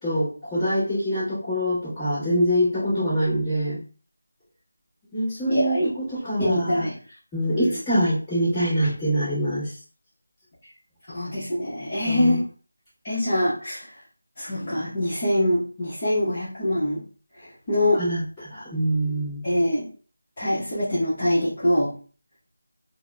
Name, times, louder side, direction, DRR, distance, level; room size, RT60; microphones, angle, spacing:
voice 1, 0.0-3.8 5.1-6.9 7.3-9.7 12.0-12.4 17.9-19.4, equal, 5° left, -17 dB, 1.2 m, -24 dB
voice 2, 5.5-5.9 6.4-7.0 7.5-7.8 11.1-12.4 13.0-13.9 14.4-17.0 17.7-18.0 19.4-19.9 20.4-21.9, left 1 dB, 25° left, -11 dB, 0.9 m, -24 dB
3.6 x 2.1 x 2.2 m, 0.39 s
figure-of-eight pair, 175°, 0 cm